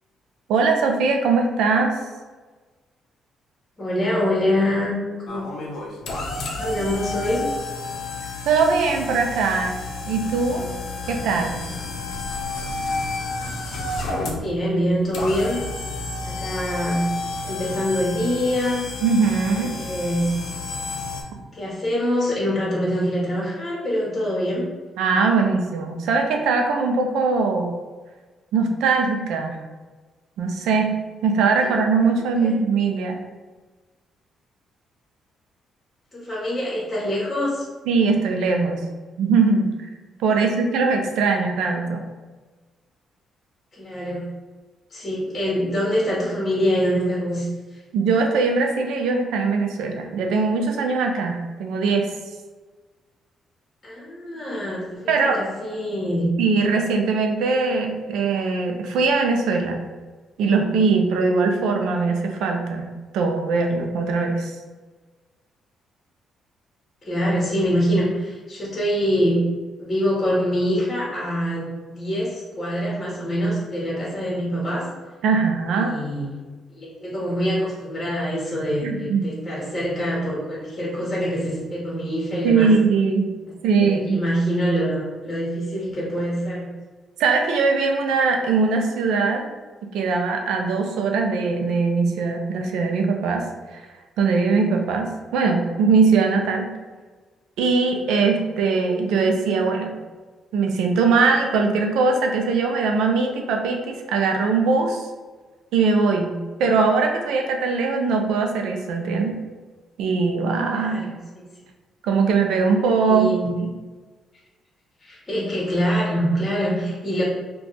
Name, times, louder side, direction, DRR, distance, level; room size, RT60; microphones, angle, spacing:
voice 1, 0.5-2.0 8.5-9.7 10.1-10.6 11.1-11.6 19.0-19.8 25.0-27.8 28.5-29.6 30.4-30.9 31.2-33.2 37.9-38.8 39.2-39.7 40.2-42.0 47.9-52.1 55.1-55.4 56.4-59.8 60.4-62.9 63.1-64.5 75.2-75.9 78.8-79.3 82.4-83.3 83.6-84.2 87.2-89.5 89.9-93.4 93.7-93.8 94.2-96.7 97.6-99.9 100.5-105.1 105.7-106.3 106.6-109.3 110.0-111.1 112.0-113.3, right 4 dB, 85° right, 3 dB, 0.5 m, -21 dB
voice 2, 3.8-5.4 6.6-7.5 14.4-15.6 16.2-17.0 17.4-18.8 19.4-20.2 21.5-24.7 31.6-31.7 32.4-32.5 36.1-37.7 40.3-40.7 43.7-44.2 44.9-47.8 53.8-56.3 67.0-69.4 69.8-74.9 75.7-76.4 76.7-82.7 83.8-86.7 110.7-111.4 113.0-113.5 115.0-117.2, equal, 30° left, -5 dB, 1.2 m, -25 dB
sound 1, 5.3-21.2, left 3 dB, 70° left, 0.6 m, -31 dB
2.6 x 2.3 x 4.0 m, 1.3 s
cardioid pair, 90°, 0 cm